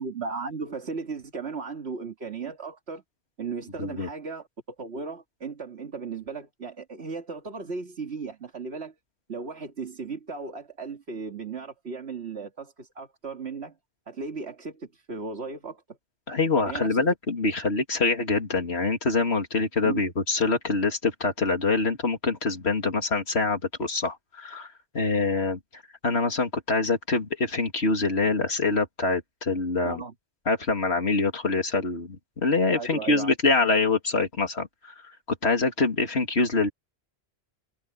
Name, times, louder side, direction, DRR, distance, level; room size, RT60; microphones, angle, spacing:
voice 1, 0.0-3.0 3.4-8.9 9.3-13.8 14.1-16.0 16.7-17.0 19.8-20.0 29.8-30.1 32.8-33.3, right 4 dB, 75° right, 2.3 m, -36 dB
voice 2, 16.3-30.0 30.5-35.2 35.4-36.7, left 3 dB, 80° left, 2.9 m, -25 dB
omnidirectional pair, 1.1 m